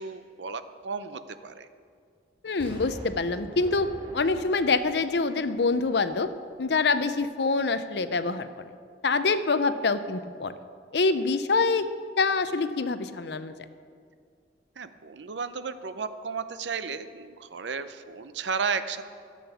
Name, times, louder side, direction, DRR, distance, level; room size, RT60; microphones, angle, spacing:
voice 1, 0.0-1.7 14.8-19.0, right 5 dB, 75° right, 11 dB, 0.6 m, -33 dB
voice 2, 2.4-6.3 6.6-8.5 9.0-10.5 10.9-11.9 12.2-13.5, left 3 dB, 65° left, 12 dB, 0.6 m, -25 dB
Explosion, 2.6-6.5 7.0-7.1, equal, 30° right, 1.7 m, -44 dB
12.5 x 8.7 x 7.0 m, 2.2 s
head